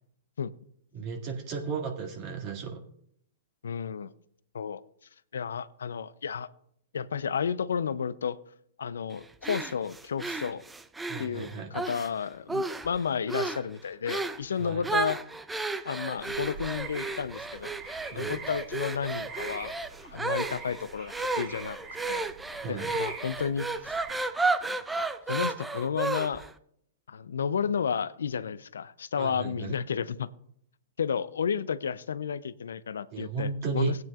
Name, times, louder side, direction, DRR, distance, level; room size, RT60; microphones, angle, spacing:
voice 1, 0.9-2.8 11.1-11.7 14.6-14.8 18.1-18.4 22.6-22.9 29.2-29.7 33.1-33.9, right 6 dB, 45° right, 1 dB, 2.1 m, -34 dB
voice 2, 3.6-4.1 4.5-4.8 5.3-6.5 6.9-8.4 8.8-10.6 11.2-15.2 15.8-19.7 20.1-21.8 22.1-22.3 22.7-24.0 24.6-26.5 27.1-30.3 31.0-34.0, left 7 dB, 80° left, 17 dB, 0.5 m, -32 dB
sound 1, 9.4-12.1 12.5-13.0 13.3-13.7 14.1-14.4 14.8-26.5, right 3 dB, 10° right, 0.5 m, -33 dB
sound 2, 16.2-24.3, right 4 dB, 25° right, 2.7 m, -45 dB
18.0 x 9.3 x 2.4 m, 0.68 s
hypercardioid pair, 115°, 0 cm